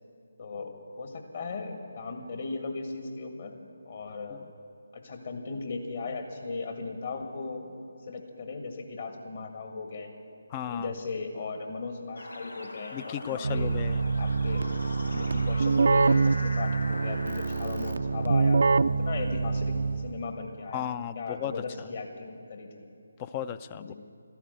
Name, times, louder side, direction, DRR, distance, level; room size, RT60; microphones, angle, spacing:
voice 1, 0.4-3.5 3.9-4.4 4.9-7.7 8.1-10.1 10.7-13.7 14.2-14.7 15.1-19.7 20.0-20.8 21.2-22.9 23.7-23.9, left 4 dB, 45° left, 5 dB, 1.8 m, -37 dB
voice 2, 10.5-10.9 12.9-14.0 20.7-21.5 23.2-23.9, left 9 dB, 25° left, 13 dB, 0.3 m, -34 dB
sound 1, 12.2-17.9, left 1 dB, 75° left, 1.4 m, -41 dB
Keyboard (musical), 13.4-20.3, right 4 dB, 55° right, 0.3 m, -25 dB
13.5 x 11.5 x 8.2 m, 2.6 s
figure-of-eight pair, 150°, 0 cm